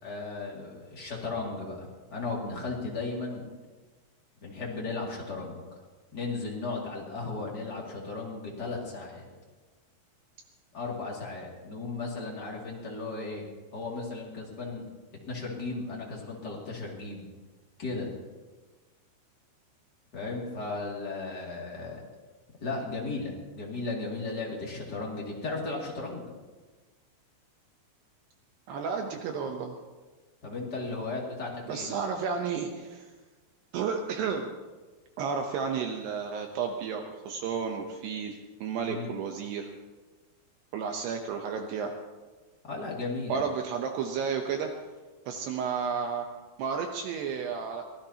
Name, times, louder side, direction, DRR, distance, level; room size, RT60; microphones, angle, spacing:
voice 1, 0.0-3.5 4.4-5.6 6.1-9.3 10.7-13.5 13.7-14.8 15.3-17.2 17.8-18.1 20.1-22.0 22.6-26.3 30.4-31.9 38.8-39.1 42.6-43.4, left 3 dB, 30° left, -3 dB, 2.0 m, -35 dB
voice 2, 28.7-29.7 31.7-33.1 33.7-34.5 35.2-39.7 40.7-41.9 43.3-44.7 45.3-46.3 46.6-47.8, right 6 dB, 75° right, 4 dB, 2.7 m, -32 dB
24.5 x 17.0 x 2.9 m, 1.3 s
omnidirectional pair, 5.3 m